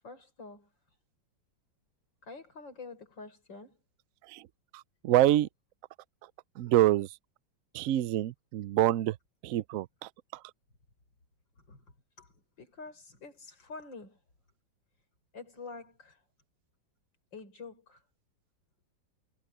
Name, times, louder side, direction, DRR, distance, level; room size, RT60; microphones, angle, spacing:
voice 1, 0.0-1.0 2.2-3.8 11.6-11.8 12.2-14.2 15.3-16.2 17.3-18.0, left 4 dB, 80° left, 5.6 m, -47 dB
voice 2, 4.7-5.5 6.6-7.1 7.7-9.2 9.4-10.1, right 13 dB, 75° right, 0.7 m, -26 dB
omnidirectional pair, 2.0 m